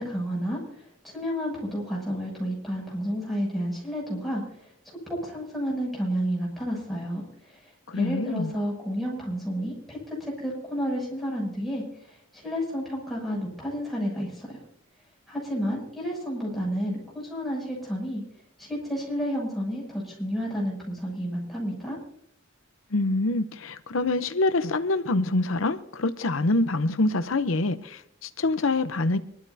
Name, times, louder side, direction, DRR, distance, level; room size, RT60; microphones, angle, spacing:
voice 1, 0.0-14.6 15.3-18.2 18.6-22.0, equal, ahead, 6.9 m, -31 dB
voice 2, 7.9-8.5 22.9-29.2, left 2 dB, 85° left, 0.8 m, -25 dB
25.5 x 12.5 x 2.7 m
head